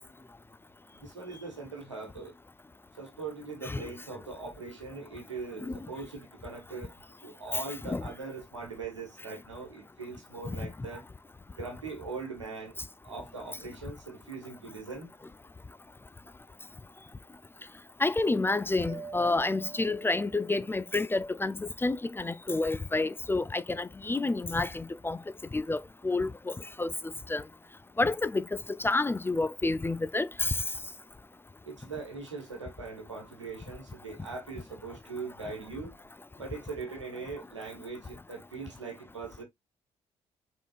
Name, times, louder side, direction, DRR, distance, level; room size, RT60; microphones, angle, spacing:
voice 1, 1.0-2.3 3.0-6.9 7.2-11.0 11.5-12.7 13.0-15.1 31.6-35.9 36.3-39.4, right 4 dB, 90° right, 1.3 m, -41 dB
voice 2, 18.0-25.2 25.5-27.4 28.0-28.4 28.8-30.6, left 2 dB, 15° left, 0.4 m, -29 dB
Mallet percussion, 18.9-20.9, right 4 dB, 30° right, 1.4 m, -45 dB
5.1 x 3.7 x 2.3 m
figure-of-eight pair, 40°, 15 cm